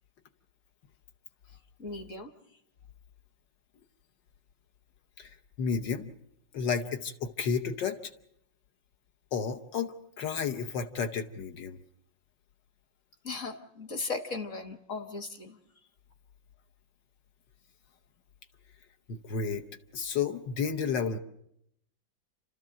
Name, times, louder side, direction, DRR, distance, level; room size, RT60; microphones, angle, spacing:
voice 1, 1.8-2.3 13.2-15.6, left 3 dB, 45° left, 8 dB, 1.6 m, -37 dB
voice 2, 5.6-6.1 6.5-8.1 9.3-11.8 19.1-19.7 19.9-21.2, left 6 dB, 70° left, 7 dB, 1.6 m, -32 dB
29.0 x 13.0 x 7.6 m, 0.78 s
omnidirectional pair, 2.1 m